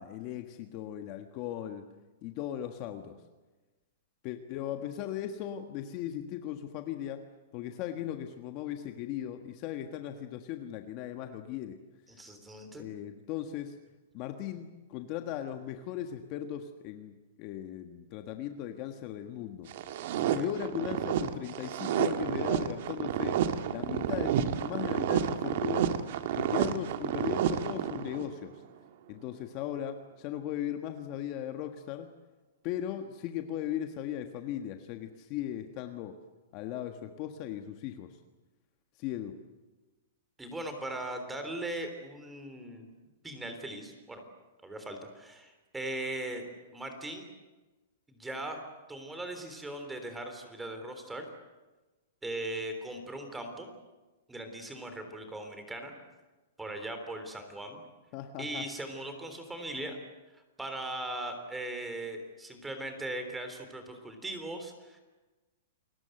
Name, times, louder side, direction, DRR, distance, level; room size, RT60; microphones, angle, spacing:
voice 1, 0.0-2.0 2.2-3.2 4.2-7.2 7.5-11.8 12.8-13.8 14.1-19.7 20.3-26.0 26.4-28.6 29.1-32.1 32.6-36.2 36.5-38.1 39.0-39.4 58.1-58.7, left 11 dB, 35° left, 6 dB, 1.5 m, -38 dB
voice 2, 12.1-12.9 20.3-20.5 40.4-42.9 43.2-44.2 44.6-46.5 46.7-47.3 48.1-48.6 48.9-51.2 52.2-53.7 54.3-55.9 56.6-57.8 58.4-60.0 60.3-65.0, right 1 dB, 5° right, 6 dB, 3.5 m, -39 dB
sound 1, 19.7-28.3, right 9 dB, 50° right, 1.7 m, -30 dB
29.0 x 21.0 x 7.9 m, 1.2 s
hypercardioid pair, 160°, 0 cm